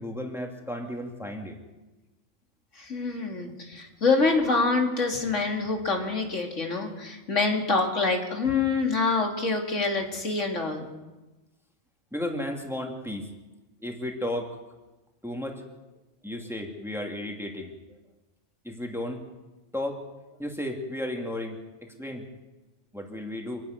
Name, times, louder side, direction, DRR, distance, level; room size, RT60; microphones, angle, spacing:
voice 1, 0.0-1.6 12.1-13.3 13.8-14.5 15.2-15.7 16.2-18.0 18.6-19.2 19.7-20.0 20.4-21.6 22.0-22.3 22.9-23.6, left 1 dB, ahead, 2 dB, 2.5 m, -33 dB
voice 2, 2.8-10.9, left 3 dB, 90° left, 2 dB, 3.0 m, -26 dB
26.5 x 10.5 x 9.5 m, 1.1 s
omnidirectional pair, 1.2 m